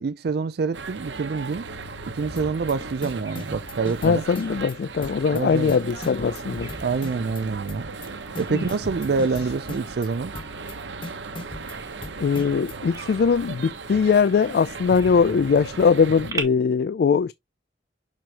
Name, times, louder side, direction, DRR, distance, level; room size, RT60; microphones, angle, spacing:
voice 1, 0.0-1.7 2.0-4.2 5.3-5.7 6.8-7.9 8.4-10.7, right 4 dB, 60° right, 0.4 m, -26 dB
sound 1, 0.7-16.3, right 4 dB, 90° right, 1.0 m, -37 dB
sound 2, 2.4-2.7 3.0-4.7 5.0-5.4 5.7-7.4 7.7-8.1 8.4-10.1 10.3-10.7 11.0-12.7, left 2 dB, 30° left, 0.9 m, -38 dB
Bird vocalization bird call bird song, 2.8-16.4, right 4 dB, 20° right, 1.8 m, -44 dB
voice 2, 4.0-6.7 8.5-8.6 12.2-17.3, left 5 dB, 60° left, 0.3 m, -21 dB
6.4 x 6.1 x 2.9 m
head